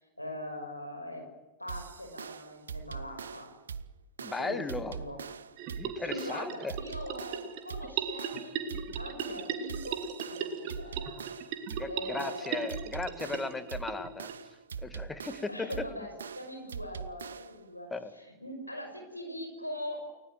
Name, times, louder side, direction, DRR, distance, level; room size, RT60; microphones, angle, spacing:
voice 1, 0.2-1.3 1.6-3.5 4.4-4.6 4.9-5.2 6.1-10.0 10.4-11.2 11.9-12.7 13.0-13.4 15.5-20.0, left 1 dB, 85° left, 4 dB, 5.8 m, -41 dB
sound 1, 1.7-17.7, right 6 dB, 70° right, 0.9 m, -43 dB
voice 2, 4.2-5.0 5.8-6.7 11.8-14.3 14.8-15.8 17.9-18.1, left 3 dB, 10° left, 11 dB, 2.1 m, -36 dB
sound 2, 5.6-14.3, right 7 dB, 45° right, 2.8 m, -38 dB
29.5 x 19.0 x 7.7 m, 1.1 s
figure-of-eight pair, 90°, 0 cm